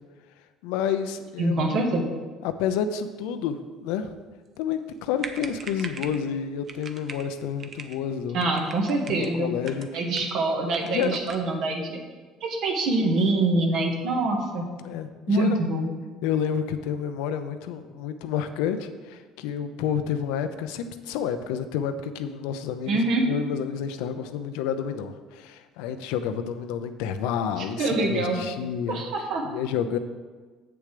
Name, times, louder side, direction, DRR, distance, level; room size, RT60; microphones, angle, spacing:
voice 1, 0.6-1.7 2.4-4.1 4.6-8.4 9.1-9.9 10.8-11.2 14.8-15.6 16.2-29.0 29.4-30.0, left 8 dB, 85° left, 10 dB, 0.6 m, -29 dB
voice 2, 1.4-2.1 8.3-9.5 9.9-12.0 12.4-14.6 15.3-15.9 22.9-23.2 27.6-28.4 28.9-29.4, right 2 dB, 65° right, 1 dB, 1.8 m, -25 dB
sound 1, 4.9-5.0 5.2-6.2 6.7-7.3 7.6-8.0 8.4-9.3 9.6-10.4 10.7-11.5, right 5 dB, 45° right, 0.7 m, -41 dB
8.0 x 6.8 x 5.0 m, 1.4 s
cardioid pair, 105°, 0 cm